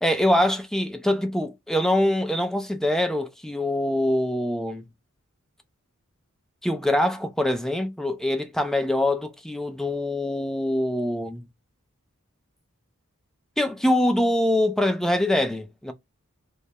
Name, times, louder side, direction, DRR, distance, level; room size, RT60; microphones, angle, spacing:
voice 1, 0.0-4.9 6.6-11.5 13.6-15.9, left 1 dB, ahead, 0.3 m, -24 dB
2.2 x 2.0 x 2.7 m
head